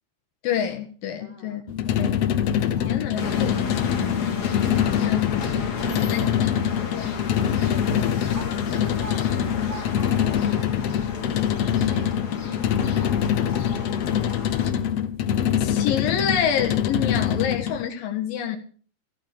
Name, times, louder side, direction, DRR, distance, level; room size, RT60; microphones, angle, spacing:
voice 1, 0.4-1.6 2.0-2.3 2.9-5.7 6.1-6.2 6.9-7.1 15.6-18.6, left 9 dB, 90° left, 3.2 m, -28 dB
voice 2, 1.2-2.1 2.7-3.0 5.8-6.5 7.1-10.8 11.3-12.1 12.5-14.0, right 2 dB, 25° left, 1.4 m, -43 dB
sound 1, 1.7-17.8, left 9 dB, 65° left, 1.7 m, -24 dB
sound 2, 3.2-14.7, left 4 dB, 45° left, 1.4 m, -33 dB
15.5 x 13.0 x 5.0 m
omnidirectional pair, 3.9 m